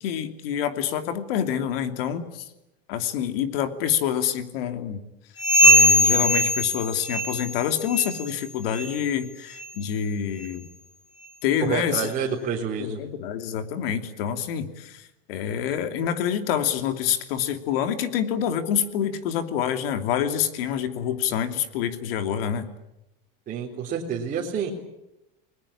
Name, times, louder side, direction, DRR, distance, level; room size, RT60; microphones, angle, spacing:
voice 1, 0.0-2.4 2.9-5.0 5.6-10.7 11.4-12.1 12.8-15.0 15.3-22.7, left 9 dB, 75° left, 8 dB, 2.9 m, -27 dB
sound 1, 5.4-7.6 7.9-8.2 8.7-8.9 9.5-9.7 10.4-10.5 11.2-11.3, left 1 dB, 15° left, 3.9 m, -20 dB
voice 2, 11.6-13.0 23.5-24.7, right 7 dB, 30° right, -3 dB, 3.9 m, -28 dB
30.0 x 21.0 x 8.8 m, 0.90 s
supercardioid pair, 145°, 29 cm